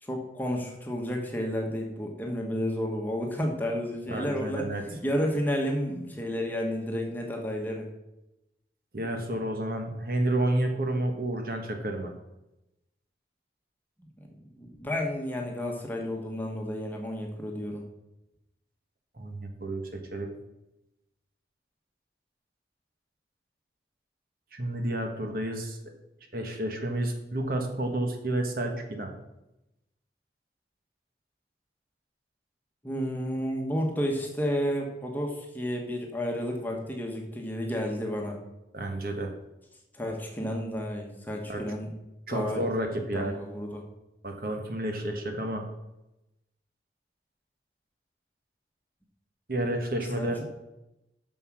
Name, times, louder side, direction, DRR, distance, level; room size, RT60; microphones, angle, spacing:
voice 1, 0.0-7.9 14.2-14.3 14.6-17.8 32.8-38.4 39.9-41.9 42.3-42.6 43.1-43.8 50.2-50.3, equal, 10° left, 1 dB, 1.3 m, -31 dB
voice 2, 4.1-4.8 8.9-12.1 19.2-20.3 24.5-25.9 26.3-29.1 38.7-39.3 41.5-41.6 42.3-43.3 44.2-45.6 49.5-50.4, right 1 dB, 50° right, 3 dB, 1.3 m, -30 dB
7.7 x 6.4 x 6.2 m, 0.93 s
head